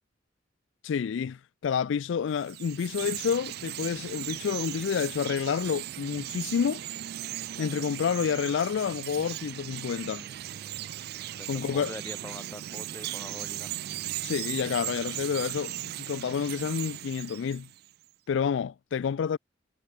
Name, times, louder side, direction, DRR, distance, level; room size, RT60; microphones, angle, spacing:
voice 1, 0.8-6.8 7.6-10.3 11.5-11.9 14.2-17.7 18.3-19.4, left 7 dB, 70° left, 0.3 m, -29 dB
Chirp tweet, 2.3-17.9, right 13 dB, 55° right, 0.3 m, -37 dB
voice 2, 11.4-13.7, left 1 dB, 15° left, 1.0 m, -44 dB
head